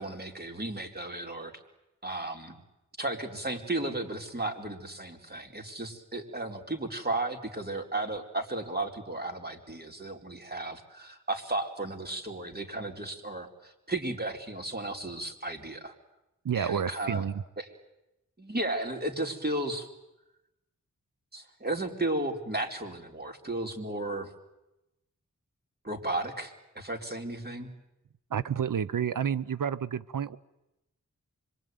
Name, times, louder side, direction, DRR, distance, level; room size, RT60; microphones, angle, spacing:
voice 1, 0.0-1.5 2.0-2.6 3.0-15.9 16.5-17.2 17.6-17.7 18.4-19.9 21.3-24.3 25.8-27.7, right 2 dB, 30° right, 3 dB, 4.3 m, -34 dB
voice 2, 16.4-17.4 28.3-30.4, right 8 dB, 85° right, 16 dB, 0.9 m, -30 dB
26.5 x 23.0 x 9.4 m, 0.92 s
cardioid pair, 55°, 31 cm